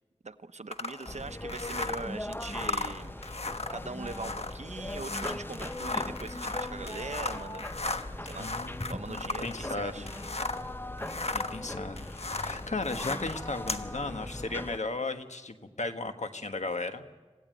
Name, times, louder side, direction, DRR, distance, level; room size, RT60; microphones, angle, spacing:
voice 1, 0.2-3.2 3.7-7.6 8.3-8.5 8.8-10.1, right 3 dB, 80° right, 11 dB, 0.9 m, -41 dB
Elastic Zip sound ST, 0.7-10.7 11.0-13.9, left 3 dB, 60° left, 1.2 m, -36 dB
sound 1, 1.1-14.8, left 1 dB, 20° left, 0.8 m, -40 dB
voice 2, 8.4-10.1 11.3-12.1 12.4-17.0, left 3 dB, 80° left, 7 dB, 1.5 m, -35 dB
27.0 x 16.5 x 9.2 m, 1.3 s
wide cardioid pair, 45°, 12 cm